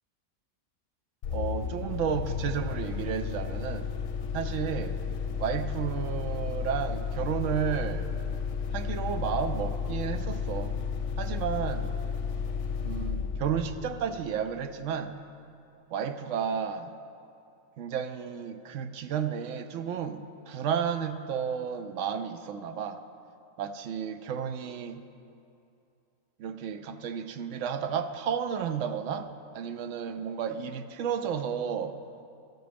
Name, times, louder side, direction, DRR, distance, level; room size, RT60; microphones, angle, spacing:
sound 1, 1.2-14.7, left 6 dB, 70° left, 0.9 m, -33 dB
voice 1, 1.3-3.9 4.3-5.0 5.4-8.1 8.7-10.8 11.2-12.0 12.8-15.2 15.9-16.9 17.8-23.0 23.6-25.0 26.4-32.0, right 7 dB, 75° right, 9 dB, 0.9 m, -32 dB
13.5 x 6.1 x 5.1 m, 2.6 s
omnidirectional pair, 1.4 m